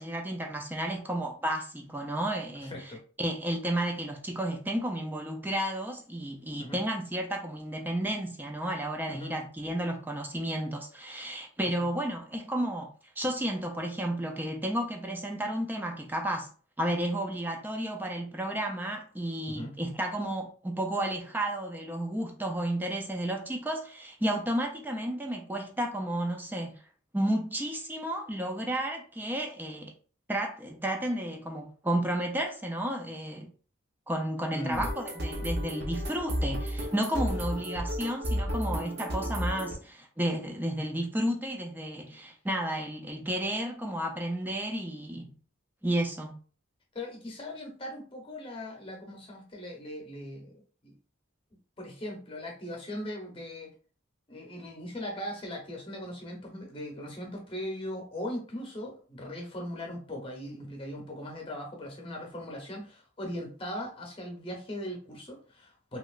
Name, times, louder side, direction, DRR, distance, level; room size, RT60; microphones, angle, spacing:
voice 1, 0.0-2.9 3.2-16.5 16.8-26.8 27.1-29.9 30.3-33.5 34.1-45.3 45.8-46.4, right 1 dB, 10° right, 0.3 m, -32 dB
voice 2, 2.6-3.0 6.6-6.8 9.1-9.3 19.5-19.7 34.5-34.9 46.9-50.9 51.8-53.7 54.3-66.0, left 1 dB, 25° left, 0.8 m, -39 dB
sound 1, 34.7-39.7, equal, 50° right, 0.7 m, -32 dB
3.0 x 2.8 x 2.4 m
head